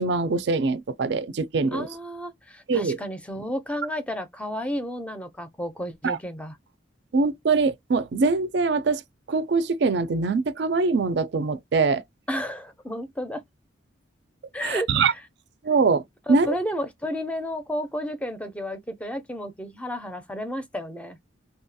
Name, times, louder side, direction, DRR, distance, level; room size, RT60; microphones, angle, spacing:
voice 1, 0.0-1.9 2.7-3.0 6.0-6.2 7.1-9.0 9.3-12.0 14.6-15.1 15.6-16.0 16.3-16.5, right 4 dB, 60° right, 0.4 m, -23 dB
voice 2, 1.7-6.6 12.3-13.4 14.5-15.2 16.3-21.2, equal, 5° left, 0.5 m, -32 dB
2.7 x 2.3 x 2.6 m
head